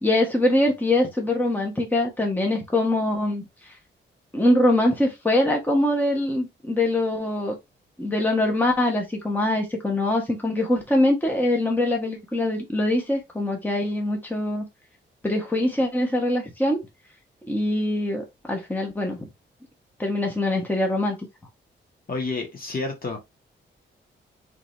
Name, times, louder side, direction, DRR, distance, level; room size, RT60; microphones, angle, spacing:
voice 1, 0.0-3.8 4.3-7.5 8.0-14.6 15.2-16.8 17.5-19.3 20.0-21.2, left 1 dB, 10° left, 1.2 m, -23 dB
voice 2, 22.1-23.2, left 3 dB, 45° left, 1.7 m, -29 dB
3.8 x 3.5 x 3.1 m
cardioid pair, 90°, 20 cm